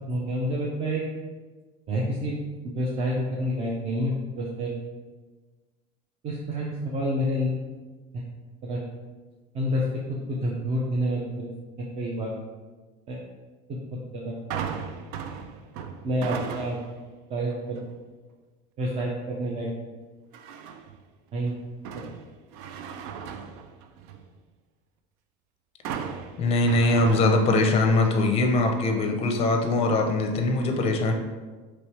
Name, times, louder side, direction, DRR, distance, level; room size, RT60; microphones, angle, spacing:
voice 1, 0.1-1.0 1.9-2.4 2.6-4.8 6.2-7.6 8.1-8.3 8.6-8.8 9.5-9.8 10.3-11.5 11.8-12.3 13.1-13.2 13.7-13.8 14.1-14.3 16.0-16.8 17.3-17.8 18.8-19.7 21.3-21.6 22.0-22.1, equal, 35° right, -4 dB, 0.6 m, -28 dB
sound 1, 14.5-17.0 17.5-17.9 20.3-21.0 21.5-24.3 25.9-27.8 28.1-28.2, right 7 dB, 80° right, 0.4 m, -37 dB
voice 2, 26.4-31.1, left 2 dB, 30° left, 4 dB, 0.5 m, -22 dB
3.1 x 3.1 x 4.4 m, 1.3 s
cardioid pair, 140°, 19 cm